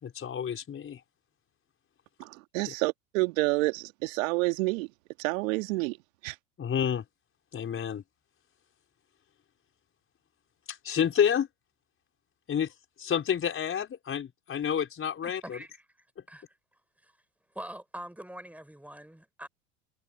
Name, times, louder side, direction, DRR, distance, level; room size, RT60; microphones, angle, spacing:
voice 1, 0.0-1.0 2.7-2.8 6.6-7.0 7.5-8.0 10.7-11.5 12.5-15.6, left 8 dB, 30° left, 4.8 m, -29 dB
voice 2, 2.2-4.9 5.2-6.0 6.2-6.4, right 23 dB, 65° right, 2.0 m, -29 dB
voice 3, 15.2-15.8 16.3-16.6 17.0-17.1 17.5-19.5, right 1 dB, 5° right, 6.2 m, -44 dB
hypercardioid pair, 85°, 42 cm